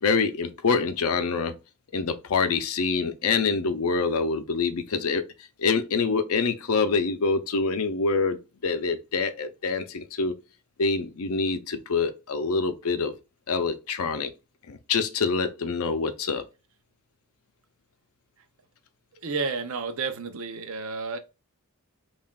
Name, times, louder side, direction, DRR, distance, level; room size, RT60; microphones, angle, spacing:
voice 1, 0.0-1.6 1.9-5.3 5.6-10.4 10.8-13.2 13.5-14.3 14.7-16.4, left 4 dB, 75° left, 0.6 m, -26 dB
voice 2, 19.2-21.2, right 4 dB, 65° right, 0.6 m, -31 dB
5.5 x 2.4 x 2.3 m
head